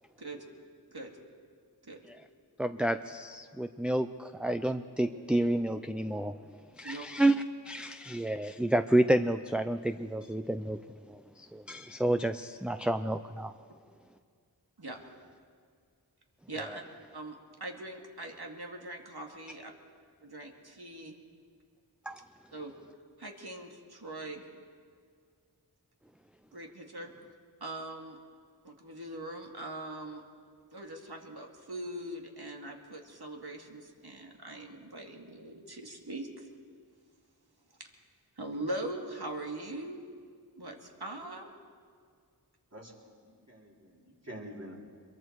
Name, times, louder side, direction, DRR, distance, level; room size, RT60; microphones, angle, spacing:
voice 1, 2.6-6.4 6.8-7.3 7.6-10.8 11.1-13.5 22.1-22.2, right 1 dB, 5° right, 9 dB, 0.5 m, -30 dB
voice 2, 16.5-16.8 17.1-19.7 20.2-21.2 22.5-22.7 23.2-24.4 26.5-27.1 27.6-28.2 28.6-30.2 30.7-36.5 37.8-37.9 38.4-40.1 40.5-41.5, right 1 dB, 70° right, 1 dB, 2.5 m, -41 dB
voice 3, 43.2-44.8, equal, 40° right, -2 dB, 3.9 m, -47 dB
24.5 x 22.5 x 4.7 m, 2.1 s
wide cardioid pair, 40°, 40 cm